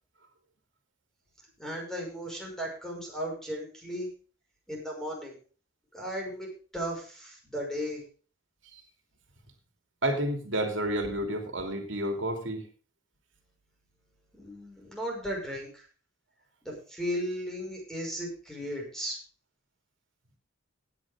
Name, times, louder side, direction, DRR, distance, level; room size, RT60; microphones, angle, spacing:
voice 1, 1.6-4.1 4.7-5.4 5.9-6.5 6.7-8.0 14.3-15.8 16.6-19.2, equal, 5° left, 0 dB, 5.7 m, -35 dB
voice 2, 10.0-12.6, right 1 dB, 65° right, 4 dB, 2.9 m, -30 dB
18.0 x 9.1 x 3.7 m, 0.38 s
head